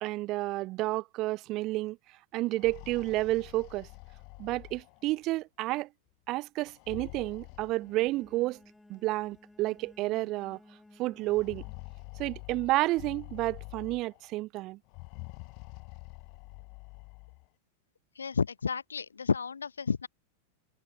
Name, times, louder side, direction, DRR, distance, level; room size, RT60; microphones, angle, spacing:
voice 1, 0.0-2.0 2.3-3.9 4.4-5.9 6.3-8.6 8.9-10.6 11.0-11.6 12.2-14.8, right 19 dB, 40° right, 0.3 m, -30 dB
sound 1, 2.4-5.3 6.6-8.3 9.3-9.4 9.8-9.9 11.2-14.3 14.9-17.5, left 33 dB, 45° left, 1.3 m, -47 dB
Bowed string instrument, 7.5-12.0, left 2 dB, 5° left, 5.1 m, -58 dB
voice 2, 18.2-20.1, left 6 dB, 75° left, 0.8 m, -31 dB
figure-of-eight pair, 90°, 0 cm